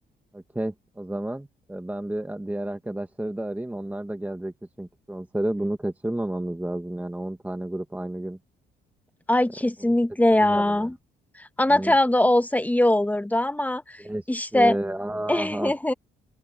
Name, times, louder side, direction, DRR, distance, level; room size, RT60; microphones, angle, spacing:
voice 1, 0.3-8.4 10.4-10.9 11.7-11.9 14.0-14.2 14.5-15.7, right 1 dB, 10° right, 1.3 m, -31 dB
voice 2, 9.3-10.9 11.4-14.0 14.3-14.8 15.3-15.9, left 1 dB, 10° left, 1.0 m, -21 dB
open air
cardioid pair, 90°, 20 cm